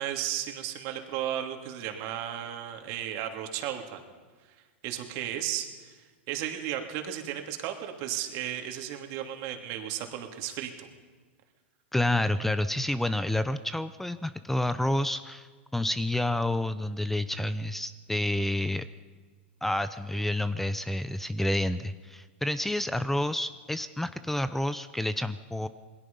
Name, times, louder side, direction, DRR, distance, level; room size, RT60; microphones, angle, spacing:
voice 1, 0.0-4.0 4.8-6.0 6.3-10.9, right 11 dB, 50° right, 4 dB, 2.9 m, -34 dB
voice 2, 11.9-18.8 19.6-25.7, left 1 dB, 5° left, 13 dB, 0.7 m, -29 dB
27.5 x 21.0 x 5.5 m, 1.4 s
hypercardioid pair, 120°, 6 cm